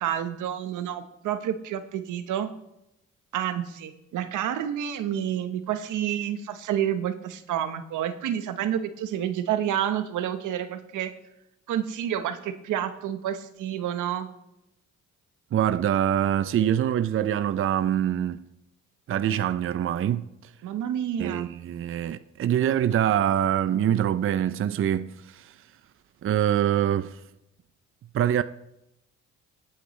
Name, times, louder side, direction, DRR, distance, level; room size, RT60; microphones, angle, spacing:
voice 1, 0.0-2.5 3.3-11.1 11.7-14.3 20.6-21.5, right 10 dB, 85° right, 1.1 m, -29 dB
voice 2, 15.5-18.4 19.1-20.2 21.2-25.6 26.2-27.2 28.1-28.4, right 10 dB, 45° right, 0.5 m, -24 dB
19.0 x 8.8 x 3.2 m
cardioid pair, 90°, 30 cm